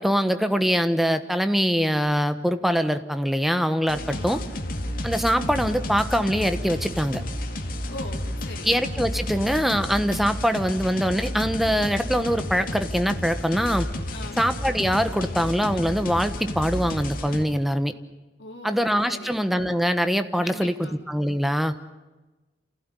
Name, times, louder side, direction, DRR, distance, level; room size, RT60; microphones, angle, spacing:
voice 1, 0.0-4.4 5.0-7.2 8.6-13.9 14.4-17.9 18.6-21.7, equal, ahead, 9 dB, 1.2 m, -23 dB
sound 1, 3.9-17.4, left 1 dB, 55° left, 2.3 m, -31 dB
voice 2, 4.1-4.5 7.9-8.8 14.1-14.4 18.4-19.4 20.4-21.0, left 2 dB, 80° left, 4 dB, 3.1 m, -41 dB
28.5 x 16.0 x 9.9 m, 1.1 s
head